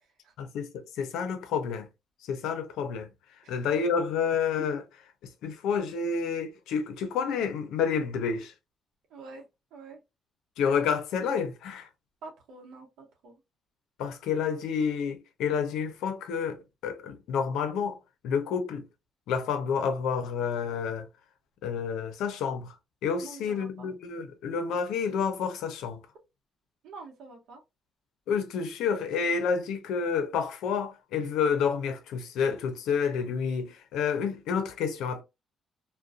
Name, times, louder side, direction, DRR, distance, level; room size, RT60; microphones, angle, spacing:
voice 1, 0.4-1.9 2.3-3.1 3.5-4.8 5.4-8.5 10.6-11.9 14.0-18.0 18.2-18.8 19.3-21.1 21.6-22.7 23.0-26.0 28.3-35.2, left 6 dB, 90° left, 0.5 m, -29 dB
voice 2, 9.1-9.4 9.7-10.0 12.2-13.3 23.2-23.9 26.8-27.6, right 3 dB, 85° right, 0.8 m, -46 dB
2.4 x 2.1 x 2.4 m
cardioid pair, 90°, 0 cm